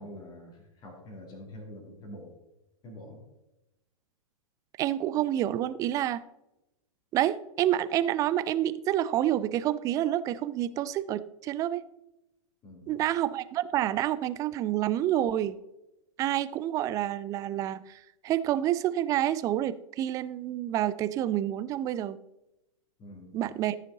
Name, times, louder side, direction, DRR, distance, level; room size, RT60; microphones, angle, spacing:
voice 1, 0.0-2.3 2.8-3.2 12.6-13.0 23.0-23.5, equal, 25° left, -2 dB, 2.6 m, -46 dB
voice 2, 4.8-6.2 7.1-11.8 12.9-15.6 16.2-22.2 23.3-23.8, right 12 dB, 20° right, 16 dB, 0.4 m, -28 dB
14.0 x 6.3 x 3.9 m, 0.92 s
figure-of-eight pair, 100°, 18 cm